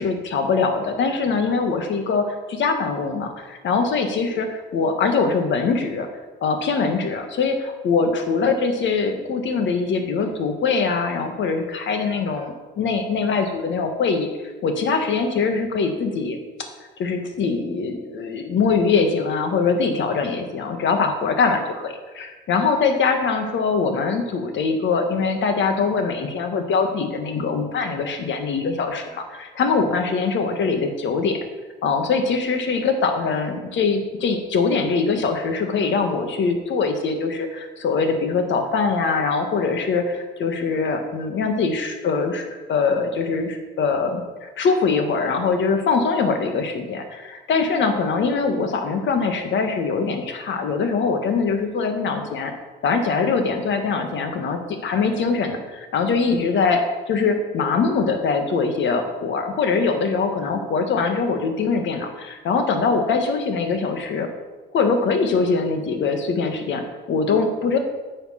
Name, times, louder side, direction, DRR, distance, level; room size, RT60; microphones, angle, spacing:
voice 1, 0.0-6.1 6.4-14.3 14.6-16.4 17.0-31.4 31.8-52.5 52.8-56.8 57.1-64.3 64.7-67.8, left 4 dB, 70° left, 6 dB, 1.6 m, -22 dB
9.8 x 6.5 x 5.7 m, 1.3 s
cardioid pair, 90°, 20 cm